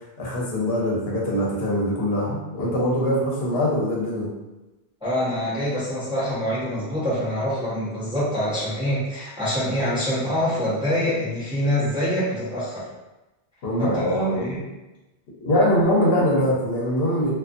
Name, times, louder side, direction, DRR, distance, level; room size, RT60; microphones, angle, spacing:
voice 1, 0.2-4.3 13.6-14.4 15.4-17.3, equal, 75° left, -4 dB, 1.0 m, -22 dB
voice 2, 5.0-12.9 13.8-14.0 14.4-14.6, equal, 5° right, -9 dB, 0.6 m, -25 dB
2.4 x 2.4 x 2.5 m, 1.1 s
omnidirectional pair, 1.1 m